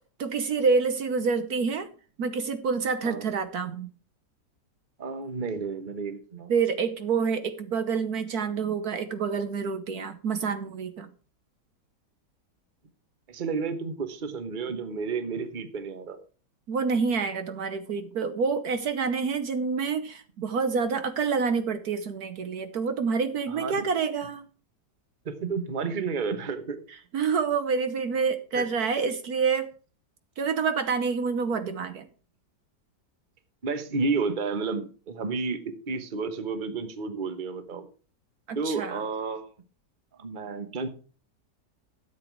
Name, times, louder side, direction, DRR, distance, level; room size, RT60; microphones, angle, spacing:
voice 1, 0.2-1.9 2.2-3.9 6.5-11.1 16.7-24.5 27.1-29.7 30.4-32.1 38.5-39.0, right 5 dB, 65° right, 10 dB, 1.4 m, -27 dB
voice 2, 5.0-6.5 13.3-16.2 23.5-23.8 25.2-26.8 28.5-28.7 33.6-37.9 38.5-39.5 40.2-40.9, right 4 dB, 30° right, 9 dB, 1.2 m, -31 dB
13.0 x 7.9 x 4.6 m, 0.38 s
omnidirectional pair, 1.8 m